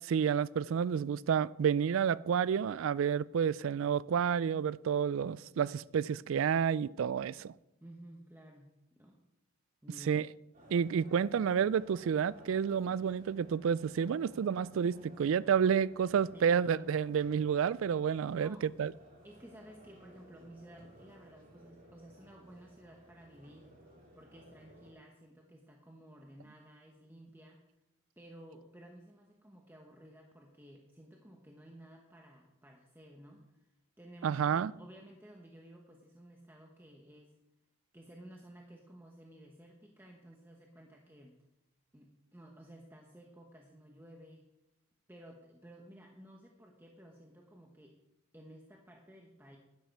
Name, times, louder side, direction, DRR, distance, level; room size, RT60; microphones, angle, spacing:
voice 1, 0.0-7.5 10.1-10.3 10.7-18.9 34.2-34.7, right 7 dB, 65° right, 0.3 m, -30 dB
voice 2, 7.8-9.2 9.8-10.2 14.0-14.6 16.3-16.9 18.3-18.6 19.2-23.7 24.1-27.6 28.2-37.3 37.9-41.4 41.9-44.4 45.1-48.0 48.3-49.6, right 1 dB, 10° right, 1.0 m, -54 dB
sound 1, 10.5-24.9, equal, 40° right, 3.0 m, -57 dB
11.5 x 10.5 x 4.6 m
head